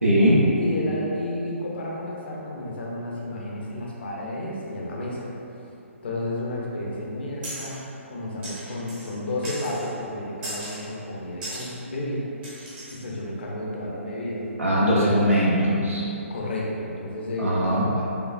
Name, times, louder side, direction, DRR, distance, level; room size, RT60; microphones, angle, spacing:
voice 1, 0.0-0.4 14.6-16.0 17.4-17.8, equal, 80° right, -7 dB, 0.9 m, -20 dB
voice 2, 0.6-5.3 6.0-12.3 12.9-15.0 16.3-18.1, left 1 dB, 50° left, -3 dB, 0.7 m, -32 dB
sound 1, 7.4-7.8 8.4-9.1 9.4-9.9 10.4-10.9 11.4-11.7 12.4-13.0, right 1 dB, 15° right, 0.8 m, -37 dB
5.1 x 2.3 x 2.4 m, 2.9 s
figure-of-eight pair, 135°, 7 cm